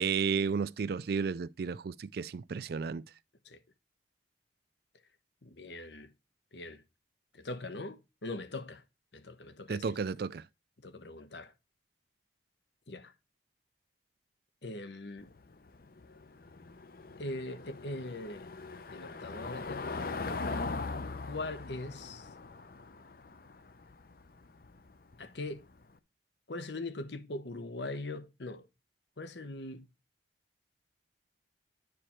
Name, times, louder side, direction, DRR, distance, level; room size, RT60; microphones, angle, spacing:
voice 1, 0.0-3.0 9.7-10.4, right 6 dB, 60° right, 0.4 m, -32 dB
voice 2, 5.4-6.1 6.5-6.8 7.3-8.8 9.1-10.0 10.8-11.5 12.9-13.1 14.6-15.3 17.2-18.5 18.9-19.9 21.3-22.3 25.2-25.7 26.5-28.7 29.2-29.9, left 2 dB, 75° left, 1.1 m, -41 dB
Car passing by / Engine, 15.2-25.8, left 3 dB, 55° left, 0.7 m, -41 dB
9.9 x 5.0 x 4.4 m
head